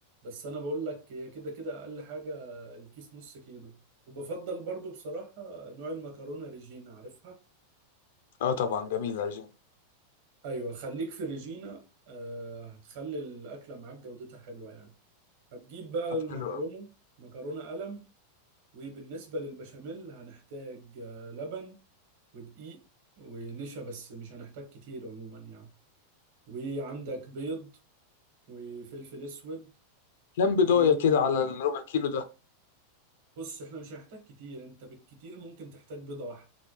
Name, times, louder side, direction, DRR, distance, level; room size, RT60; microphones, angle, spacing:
voice 1, 0.2-3.7 4.1-7.4 10.4-14.9 15.5-16.9 17.2-18.0 18.7-21.8 22.3-22.8 23.2-25.7 26.5-27.7 28.5-29.7 30.5-31.5 33.4-36.4, right 2 dB, 60° right, 1.4 m, -39 dB
voice 2, 8.4-9.5 16.4-16.6 30.4-32.2, left 6 dB, 75° left, 0.5 m, -25 dB
3.7 x 2.2 x 3.2 m
supercardioid pair, 155°, 0 cm